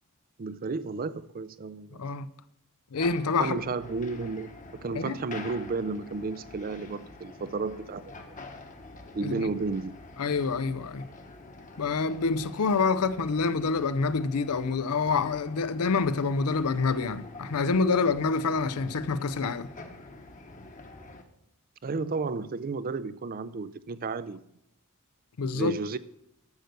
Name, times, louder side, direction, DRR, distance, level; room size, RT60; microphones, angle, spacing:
voice 1, 0.4-2.0 3.4-8.3 9.1-10.0 21.8-24.5 25.5-26.0, right 4 dB, 40° right, 0.4 m, -33 dB
voice 2, 1.9-2.3 2.9-3.6 5.0-5.2 9.2-9.5 10.2-11.0 11.8-19.7 25.4-25.7, left 4 dB, 80° left, 0.6 m, -27 dB
sound 1, 2.9-21.2, left 2 dB, 35° left, 1.2 m, -47 dB
12.0 x 6.6 x 6.7 m
head